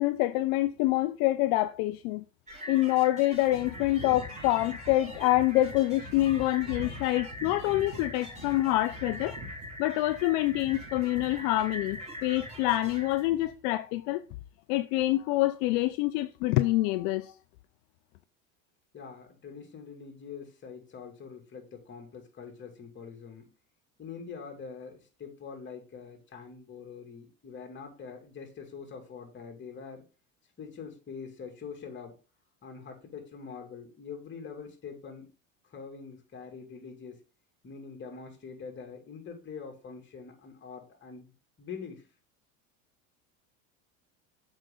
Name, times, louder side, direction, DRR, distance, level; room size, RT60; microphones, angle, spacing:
voice 1, 0.0-2.2 2.7-9.3 9.8-14.2 14.7-17.3, left 16 dB, 65° left, 0.6 m, -26 dB
sound 1, 2.5-13.3, equal, 15° right, 4.4 m, -43 dB
sound 2, 3.4-13.6, left 1 dB, 50° right, 2.8 m, -45 dB
voice 2, 18.9-23.5 24.0-30.1 30.6-32.2 32.6-35.3 35.6-37.2 37.6-41.3 41.6-42.1, left 6 dB, 25° left, 2.6 m, -44 dB
7.4 x 5.1 x 3.9 m
supercardioid pair, 105°, 41 cm